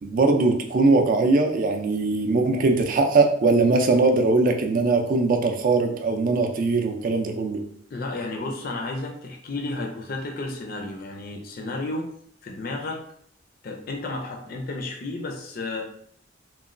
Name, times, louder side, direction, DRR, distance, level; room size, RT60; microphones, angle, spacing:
voice 1, 0.0-7.6, right 3 dB, 45° right, 4 dB, 0.3 m, -21 dB
voice 2, 7.9-12.1 12.4-13.0 13.6-15.8, left 2 dB, 50° left, 2 dB, 0.4 m, -32 dB
3.0 x 2.2 x 2.5 m, 0.65 s
head